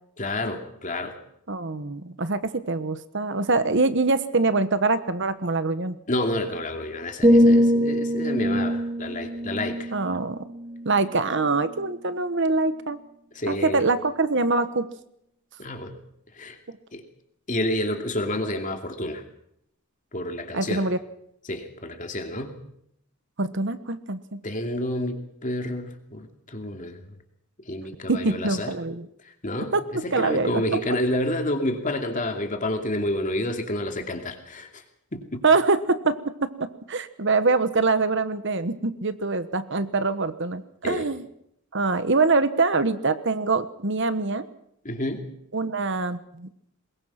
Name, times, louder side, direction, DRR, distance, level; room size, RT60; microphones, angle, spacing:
voice 1, 0.2-1.2 6.1-9.9 13.3-13.8 15.6-15.9 16.3-16.6 16.9-17.0 17.5-19.2 20.1-20.8 21.5-22.6 24.4-27.0 27.7-28.7 29.4-34.7 35.1-35.4 40.8-41.1 44.8-45.3, left 1 dB, 35° left, 5 dB, 2.6 m, -29 dB
voice 2, 1.5-6.0 9.9-10.4 10.8-13.0 13.5-14.9 20.5-21.0 23.4-24.4 28.1-29.1 29.7-29.8 30.1-31.0 35.4-41.2 41.7-44.5 45.5-46.5, right 3 dB, 55° right, 12 dB, 1.2 m, -24 dB
sound 1, 7.2-11.1 11.6-11.9, equal, 20° right, 1.8 m, -22 dB
22.5 x 21.5 x 5.9 m, 0.74 s
head